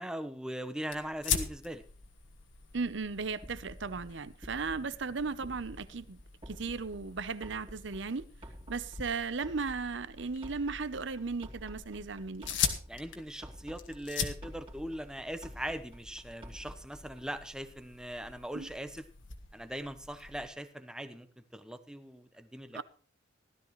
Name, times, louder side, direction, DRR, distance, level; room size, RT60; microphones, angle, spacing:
voice 1, 0.0-1.8 12.9-19.1 19.5-22.8, equal, 5° right, 0.8 m, -40 dB
sound 1, 0.9-20.5, left 7 dB, 70° left, 1.6 m, -42 dB
voice 2, 2.7-6.2 6.5-8.3 8.7-12.6 18.5-18.7 22.7-22.8, right 4 dB, 65° right, 0.7 m, -36 dB
sound 2, 3.0-17.4, equal, 30° right, 2.7 m, -51 dB
16.5 x 13.0 x 3.1 m
head